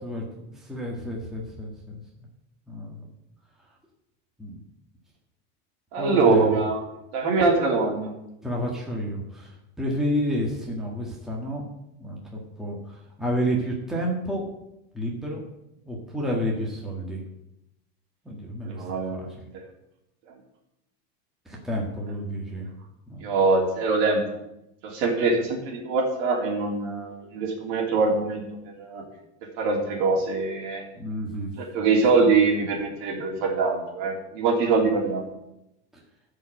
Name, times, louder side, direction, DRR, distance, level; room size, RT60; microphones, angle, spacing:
voice 1, 0.0-2.3 2.7-3.1 4.4-4.6 6.0-6.6 8.4-11.6 12.0-14.4 14.9-15.4 15.9-17.2 18.2-19.3 21.4-22.7 23.1-23.3 30.9-31.5, equal, ahead, -3 dB, 1.6 m, -30 dB
voice 2, 5.9-6.8 7.1-8.1 18.6-19.2 23.2-24.2 24.8-28.4 28.8-29.0 29.6-30.8 31.6-35.3, right 4 dB, 50° right, 0 dB, 3.2 m, -23 dB
13.0 x 5.1 x 7.7 m, 0.86 s
supercardioid pair, 160°, 33 cm